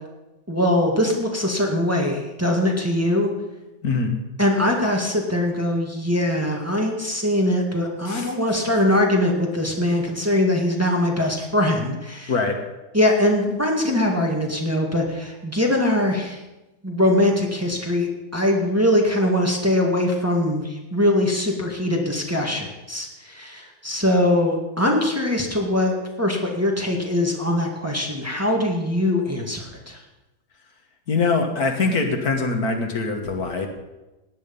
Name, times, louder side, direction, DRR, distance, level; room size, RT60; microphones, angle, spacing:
voice 1, 0.5-3.3 4.4-12.3 12.9-16.4 16.8-30.0, left 1 dB, 10° right, 0 dB, 1.9 m, -22 dB
voice 2, 3.8-4.2 8.1-8.3 12.3-12.6 31.1-33.7, left 4 dB, 65° left, 4 dB, 2.0 m, -23 dB
17.5 x 9.6 x 5.4 m, 1.0 s
omnidirectional pair, 1.8 m